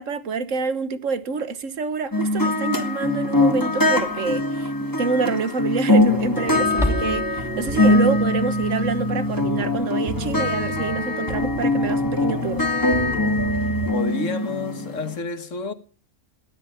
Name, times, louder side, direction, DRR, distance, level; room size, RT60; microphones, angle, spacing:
voice 1, 0.0-4.7 5.0-12.6, right 4 dB, 80° right, 1.5 m, -27 dB
sound 1, 2.1-15.1, left 2 dB, 15° left, 2.1 m, -22 dB
sound 2, 2.1-2.2 4.0-4.4 4.8-4.9 6.6-7.5, left 1 dB, ahead, 3.0 m, -27 dB
sound 3, 6.1-13.9, equal, 40° right, 3.7 m, -32 dB
voice 2, 13.9-15.7, left 4 dB, 75° left, 1.8 m, -29 dB
18.5 x 12.5 x 5.7 m
omnidirectional pair, 1.3 m